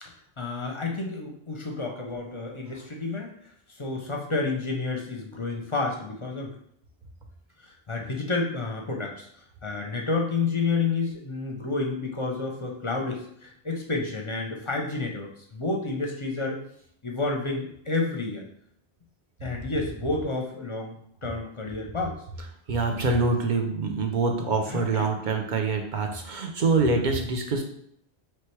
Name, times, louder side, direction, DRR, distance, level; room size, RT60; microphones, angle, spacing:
voice 1, 0.4-3.3 3.8-6.5 7.6-9.3 9.6-16.6 17.0-18.5 19.4-21.0 21.2-22.2 24.7-25.1, left 3 dB, 35° left, 0 dB, 0.6 m, -30 dB
voice 2, 22.7-27.6, right 3 dB, 50° right, 3 dB, 0.8 m, -25 dB
3.2 x 3.2 x 4.5 m, 0.68 s
omnidirectional pair, 1.1 m